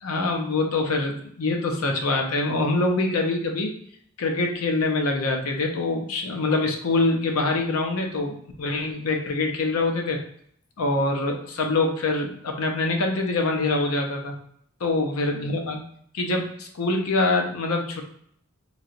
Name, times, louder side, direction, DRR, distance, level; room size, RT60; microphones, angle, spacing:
voice 1, 0.0-3.7 4.2-10.2 10.8-14.3 14.8-15.8 16.1-18.0, left 2 dB, 80° left, 3 dB, 0.6 m, -24 dB
3.0 x 2.8 x 2.5 m, 0.67 s
head